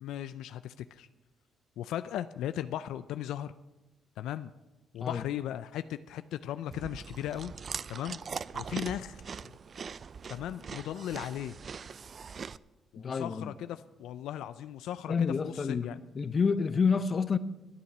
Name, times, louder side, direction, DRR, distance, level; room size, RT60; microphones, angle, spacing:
voice 1, 0.0-1.1 1.8-3.5 4.2-4.5 4.9-7.5 7.9-8.2 8.5-9.2 10.3-11.6 12.9-15.1 15.4-16.0, left 11 dB, 85° left, 0.4 m, -37 dB
Chewing mastication, 6.7-12.6, right 6 dB, 45° right, 0.4 m, -41 dB
voice 2, 13.0-13.5 15.1-17.4, left 5 dB, 45° left, 0.7 m, -29 dB
12.5 x 8.5 x 7.2 m
cardioid pair, 90°, 0 cm